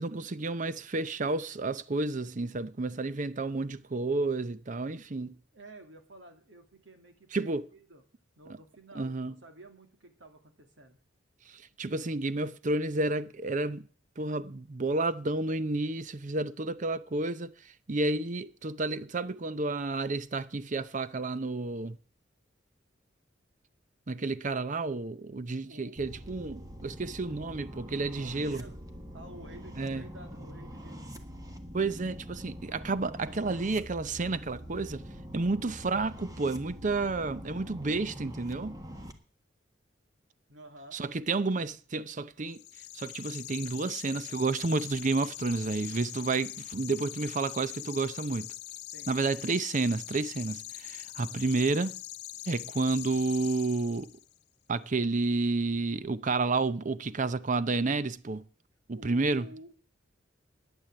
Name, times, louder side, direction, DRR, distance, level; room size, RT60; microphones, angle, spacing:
voice 1, 0.0-5.4 7.3-7.6 8.9-9.3 11.5-13.9 14.2-17.5 17.9-22.0 24.1-28.6 29.8-30.0 31.7-35.0 35.3-38.8 40.9-42.6 42.9-48.5 49.1-52.0 52.5-54.1 54.7-58.4 58.9-59.5, right 3 dB, 45° right, 0.7 m, -31 dB
voice 2, 5.3-8.0 8.4-11.0 25.7-26.0 28.1-28.8 29.1-31.1 40.5-41.0 48.9-49.1 51.2-51.4 58.9-59.7, right 1 dB, 80° right, 2.4 m, -51 dB
sound 1, 26.0-39.1, equal, 20° right, 1.5 m, -44 dB
sound 2, 42.5-54.3, left 15 dB, 60° left, 0.5 m, -43 dB
12.0 x 9.9 x 7.8 m
head